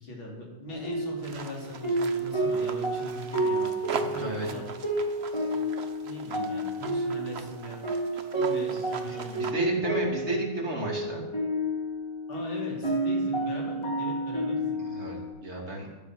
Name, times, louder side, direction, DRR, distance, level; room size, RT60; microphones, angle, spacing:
voice 1, 0.0-4.7 5.5-5.6 6.0-7.8 8.5-9.5 12.3-14.8, left 1 dB, 65° left, -2 dB, 4.0 m, -40 dB
sound 1, 0.7-15.3, right 1 dB, 10° left, 2.8 m, -31 dB
sound 2, 1.2-9.5, right 6 dB, 85° right, 0.5 m, -41 dB
voice 2, 4.0-4.5 8.3-8.7 9.1-11.2 14.9-15.9, right 1 dB, 30° right, -1 dB, 3.1 m, -32 dB
13.5 x 10.5 x 6.2 m, 1.1 s
omnidirectional pair, 2.4 m